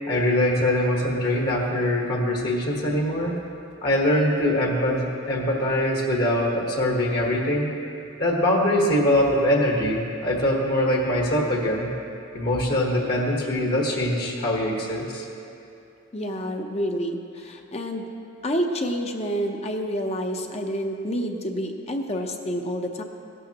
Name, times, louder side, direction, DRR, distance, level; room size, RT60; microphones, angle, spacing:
voice 1, 0.1-3.3 3.8-7.7 8.2-11.9 12.3-15.2, left 1 dB, 50° left, -1 dB, 1.4 m, -23 dB
voice 2, 16.1-18.0 18.4-23.0, equal, 30° left, 3 dB, 0.8 m, -28 dB
17.0 x 12.5 x 3.0 m, 2.7 s
head